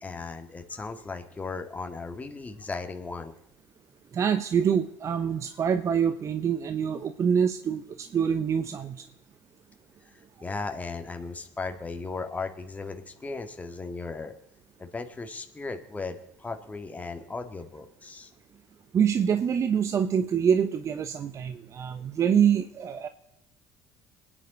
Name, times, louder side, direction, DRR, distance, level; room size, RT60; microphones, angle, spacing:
voice 1, 0.0-3.3 10.0-14.3 14.8-18.3, left 4 dB, 20° left, 5 dB, 1.8 m, -36 dB
voice 2, 4.1-9.0 18.9-23.1, right 7 dB, 45° right, 9 dB, 0.9 m, -25 dB
26.0 x 9.9 x 3.9 m, 0.84 s
hypercardioid pair, 70°, 7 cm